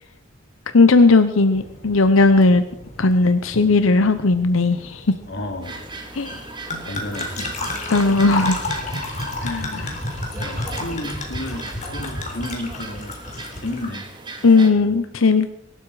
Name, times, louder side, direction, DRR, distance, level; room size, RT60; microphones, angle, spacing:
voice 1, 0.7-2.6 3.0-5.0 6.1-6.4 7.9-8.6 9.4-9.9 14.4-15.5, left 3 dB, 85° left, 10 dB, 0.9 m, -16 dB
sound 1, 1.5-13.9, left 2 dB, 35° left, 3.9 m, -32 dB
voice 2, 5.3-5.8 6.3-6.5 6.8-7.7 8.7-9.3 9.7-9.9 10.4-13.1 13.6-14.1 14.7-15.0, left 1 dB, 60° left, 5 dB, 2.9 m, -33 dB
sound 2, 5.6-14.7, right 3 dB, 25° right, 2.5 m, -37 dB
23.0 x 12.5 x 4.9 m, 0.83 s
head